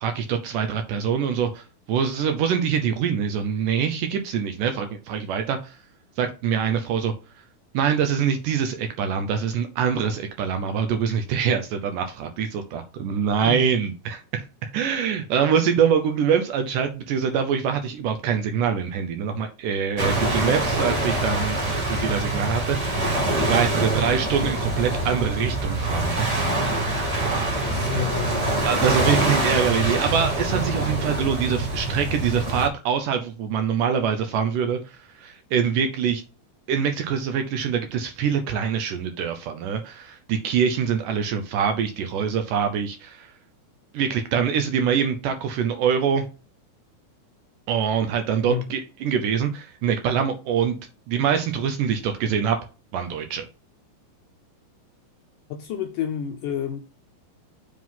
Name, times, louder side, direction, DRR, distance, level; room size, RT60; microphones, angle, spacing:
voice 1, 0.0-5.8 6.2-7.1 7.7-23.0 23.5-26.3 27.2-27.5 28.7-36.2 36.7-43.3 43.9-46.3 47.7-50.8 51.1-52.6 52.9-53.5, right 7 dB, 75° right, 2.1 m, -24 dB
sound 1, 20.0-32.7, right 2 dB, 20° right, 0.9 m, -25 dB
voice 2, 27.6-28.6 48.5-48.7 55.5-56.8, left 9 dB, 75° left, 1.9 m, -29 dB
7.5 x 3.8 x 5.7 m
omnidirectional pair, 4.4 m